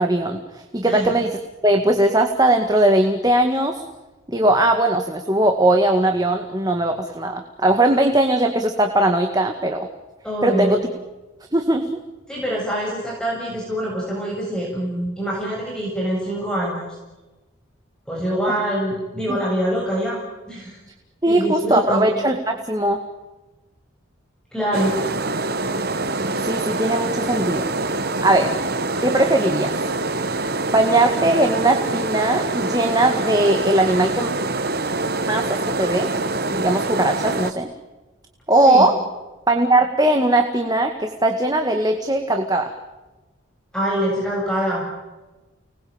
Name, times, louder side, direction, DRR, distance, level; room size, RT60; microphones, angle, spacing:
voice 1, 0.0-1.4 1.6-3.8 4.3-9.9 10.4-10.8 11.5-11.9 18.5-18.6 19.3-19.4 21.2-23.0 26.4-27.7 28.2-28.5 29.0-29.7 30.7-34.3 35.3-36.1 36.5-37.7 38.5-38.9 39.5-42.7, right 1 dB, 20° right, 4 dB, 2.0 m, -19 dB
voice 2, 10.2-10.7 12.3-16.8 18.1-20.2 20.5-20.8 21.3-22.0 24.5-24.9 38.7-38.9 43.7-44.8, right 1 dB, 5° left, -4 dB, 7.4 m, -24 dB
sound 1, 24.7-37.5, right 2 dB, 50° right, 1.6 m, -25 dB
30.0 x 20.5 x 9.0 m, 1.1 s
head